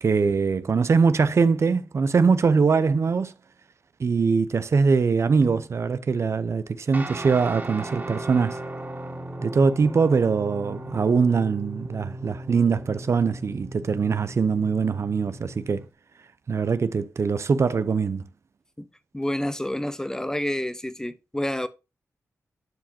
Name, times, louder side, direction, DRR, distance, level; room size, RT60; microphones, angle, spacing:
voice 1, 0.0-3.3 4.0-8.6 9.4-15.8 16.5-18.2, right 5 dB, 55° right, 0.6 m, -22 dB
Guitar, 6.9-15.8, right 1 dB, 35° right, 2.4 m, -37 dB
voice 2, 19.1-21.7, left 1 dB, 10° left, 0.8 m, -28 dB
11.5 x 4.9 x 2.7 m
cardioid pair, 60°, 6 cm